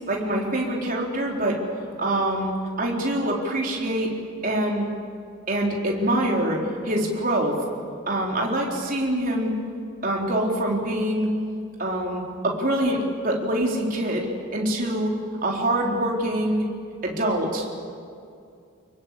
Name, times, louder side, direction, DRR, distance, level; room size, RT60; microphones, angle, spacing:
voice 1, 0.1-1.6 2.0-4.1 4.4-4.9 5.5-6.6 6.8-7.6 8.1-9.5 10.0-11.3 11.8-13.0 13.2-15.2 15.4-16.7 17.0-17.9, right 1 dB, 45° right, -1 dB, 4.3 m, -25 dB
26.5 x 22.5 x 8.6 m, 2.4 s
head